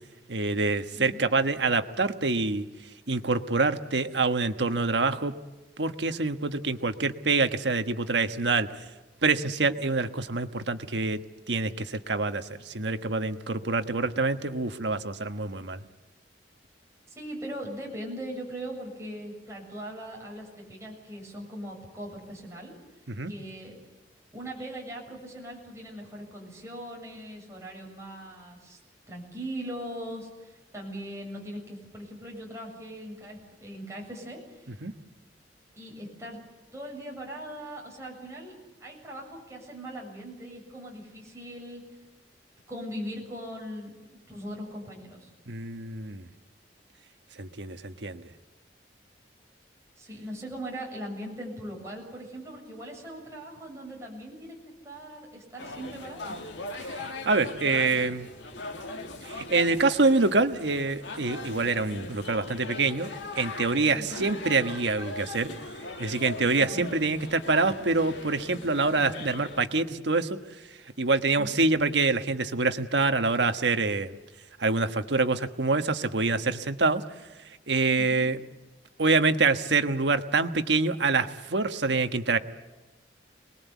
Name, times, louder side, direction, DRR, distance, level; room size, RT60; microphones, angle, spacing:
voice 1, 0.3-2.7 3.1-5.3 5.8-8.7 9.2-11.2 11.5-15.8 23.1-23.3 34.8-34.9 45.5-46.3 47.4-48.2 56.8-58.3 59.2-63.1 63.4-65.5 66.0-70.4 71.0-74.2 74.6-77.0 77.7-78.4 79.0-82.4, right 3 dB, 75° right, 8 dB, 1.3 m, -26 dB
voice 2, 0.9-1.3 17.2-22.8 23.3-23.7 24.3-28.8 29.1-34.8 35.8-36.4 36.7-41.8 42.7-43.9 44.3-45.3 50.0-54.6 54.8-56.3 64.0-64.3 66.6-66.9 69.0-69.2 71.4-71.5, equal, 15° right, -1 dB, 7.3 m, -40 dB
sound 1, 55.6-69.7, left 2 dB, 90° left, 2.3 m, -40 dB
27.5 x 21.0 x 8.3 m, 1.1 s
head